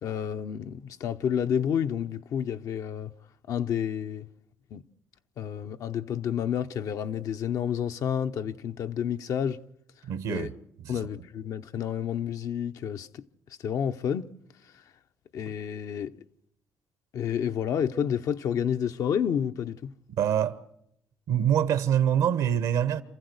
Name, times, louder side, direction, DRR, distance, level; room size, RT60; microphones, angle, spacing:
voice 1, 0.0-3.1 3.5-4.3 4.7-4.8 5.4-9.6 10.3-10.5 10.9-13.3 13.6-14.3 15.3-16.1 17.1-19.9, left 8 dB, 70° left, 0.8 m, -30 dB
voice 2, 10.1-10.5 10.8-11.0 20.2-20.6 21.3-23.0, right 9 dB, 80° right, 1.2 m, -25 dB
27.5 x 14.5 x 8.0 m
supercardioid pair, 70°, 6 cm